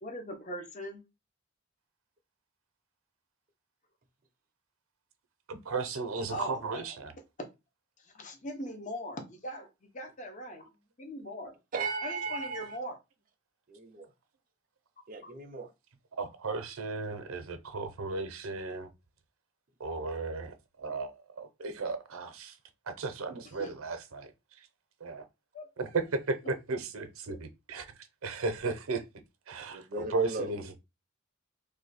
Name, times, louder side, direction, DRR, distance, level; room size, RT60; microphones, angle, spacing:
voice 1, 0.0-1.0 6.3-6.9 7.4-7.5 8.0-9.7 9.9-10.7 11.0-11.5 12.0-13.0 15.2-15.3 23.6-23.7 25.5-25.7 27.3-27.4, equal, 35° left, 0.7 m, -40 dB
voice 2, 5.5-7.1 16.2-18.9 19.8-22.6 22.9-24.3 25.0-25.2 25.8-27.9 28.2-29.0 29.5-30.6, right 3 dB, 85° right, 0.6 m, -35 dB
voice 3, 11.7-12.8 13.7-14.1 15.1-15.7 29.7-30.8, right 3 dB, 40° right, 0.5 m, -37 dB
2.7 x 2.2 x 4.0 m
head